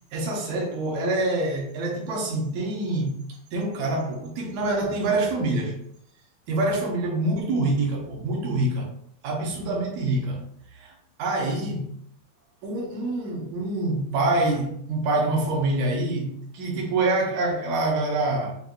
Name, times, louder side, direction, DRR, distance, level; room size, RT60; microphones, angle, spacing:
voice 1, 0.1-3.2 3.5-5.8 6.5-8.9 9.2-10.4 10.8-10.9 11.2-11.9 12.6-18.6, right 2 dB, 75° right, -2 dB, 1.7 m, -26 dB
7.7 x 2.7 x 2.3 m, 0.68 s
omnidirectional pair, 4.7 m